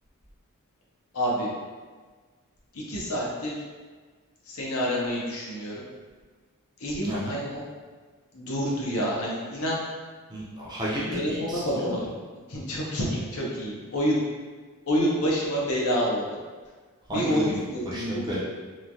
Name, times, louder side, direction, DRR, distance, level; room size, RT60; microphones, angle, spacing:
voice 1, 1.1-1.5 2.7-3.6 4.5-5.8 6.8-7.6 8.3-9.8 11.1-12.1 12.5-14.2 14.9-16.2 17.1-18.4, equal, 75° left, -4 dB, 0.7 m, -28 dB
voice 2, 7.0-7.4 10.3-11.9 17.1-17.6 17.8-18.4, equal, 20° right, -6 dB, 0.5 m, -32 dB
3.0 x 2.3 x 2.6 m, 1.4 s
head